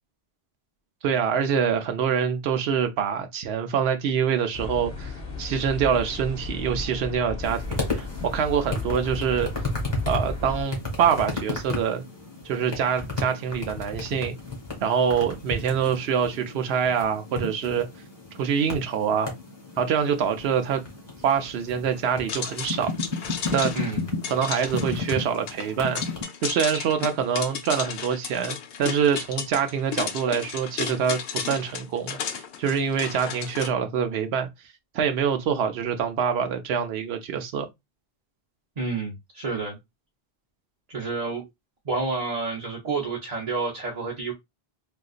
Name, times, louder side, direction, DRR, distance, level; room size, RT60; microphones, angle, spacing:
voice 1, 1.0-8.1 8.3-9.5 10.1-12.0 12.4-14.4 14.8-17.9 18.4-19.3 19.8-20.8 21.2-22.9 23.5-23.7 24.3-26.0 26.4-34.5 34.9-37.7, right 7 dB, 85° right, 0.8 m, -25 dB
sound 1, 4.5-10.6, left 3 dB, 45° left, 1.4 m, -34 dB
sound 2, 7.4-26.2, left 3 dB, 25° left, 1.4 m, -34 dB
sound 3, 22.3-33.7, left 7 dB, 75° left, 0.8 m, -34 dB
voice 2, 38.8-39.8 40.9-41.4 41.8-44.3, right 4 dB, 45° right, 0.8 m, -29 dB
3.8 x 2.5 x 2.4 m
omnidirectional pair, 1.0 m